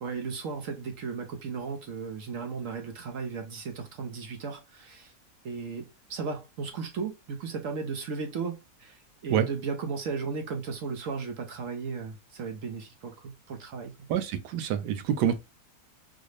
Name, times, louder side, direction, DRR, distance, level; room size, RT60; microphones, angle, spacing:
voice 1, 0.0-5.1 5.4-13.9 15.2-15.3, right 5 dB, 65° right, 0.9 m, -35 dB
voice 2, 14.1-15.4, right 9 dB, 85° right, 1.2 m, -26 dB
3.9 x 2.0 x 3.1 m
omnidirectional pair, 1.7 m